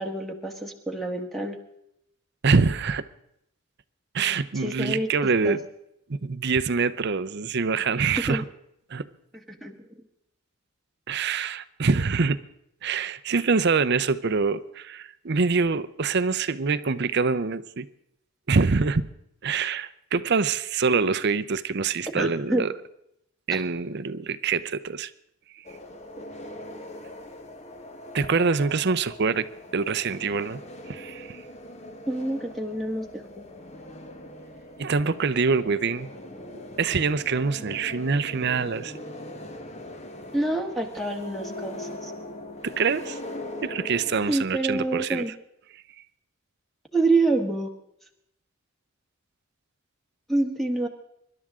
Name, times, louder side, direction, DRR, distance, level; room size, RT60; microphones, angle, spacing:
voice 1, 0.0-1.6 4.5-5.1 5.4-5.6 8.3-8.4 9.3-10.0 22.1-22.7 23.5-23.6 32.1-33.4 40.3-42.1 44.3-45.3 46.9-47.7 50.3-50.9, right 2 dB, ahead, 3 dB, 1.5 m, -27 dB
voice 2, 2.4-3.0 4.1-5.6 6.1-8.4 8.9-9.1 11.1-12.4 12.8-17.9 18.5-19.1 19.4-22.7 23.5-25.1 25.5-25.6 28.1-29.5 29.7-30.6 30.9-31.4 34.8-36.1 36.8-39.0 42.6-43.2 43.6-45.3, right 4 dB, 50° right, 15 dB, 0.6 m, -25 dB
sound 1, 25.6-44.3, left 1 dB, 30° left, 1.2 m, -41 dB
25.0 x 12.0 x 3.7 m, 0.77 s
head